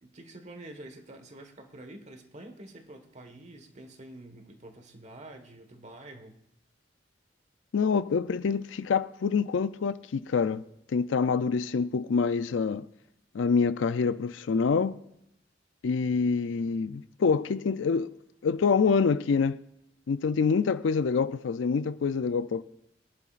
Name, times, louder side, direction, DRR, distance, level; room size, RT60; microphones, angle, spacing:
voice 1, 0.0-6.4, right 1 dB, 40° right, 1.5 m, -47 dB
voice 2, 7.7-10.6 10.9-12.9 13.3-15.0 15.8-18.1 18.4-19.6 20.1-22.6, left 5 dB, 80° left, 0.4 m, -26 dB
23.5 x 11.0 x 2.5 m
head